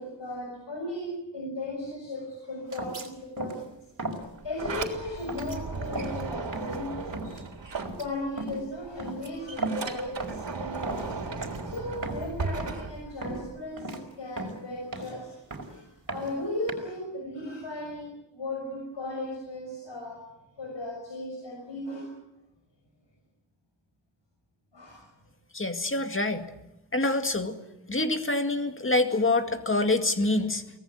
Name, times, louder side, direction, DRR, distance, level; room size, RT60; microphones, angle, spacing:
voice 1, 0.0-3.7 4.4-7.5 8.0-11.1 11.6-20.3 20.6-22.1 24.7-25.1, left 1 dB, 80° left, 1 dB, 6.3 m, -36 dB
sound 1, 2.7-3.1 3.4-3.7 4.0-4.2 4.6-4.9 5.3-5.6 5.9-6.2 6.5-6.8 7.1-7.4 7.8-8.1 8.4-8.6 9.0-9.9 10.2-10.5 10.8-11.1 11.4-11.6 11.9-12.3 12.6-12.8 13.2-13.5 13.8-14.0 14.4-15.2 15.5-15.8 16.1-16.7, right 2 dB, 45° right, 4.9 m, -36 dB
Sliding door, 4.2-8.5 8.9-13.6, right 4 dB, 80° right, 3.5 m, -36 dB
voice 2, 25.5-26.5 26.9-27.6 27.9-30.6, left 2 dB, 30° left, 7 dB, 2.1 m, -26 dB
24.0 x 18.5 x 9.7 m, 0.94 s
wide cardioid pair, 115°, 43 cm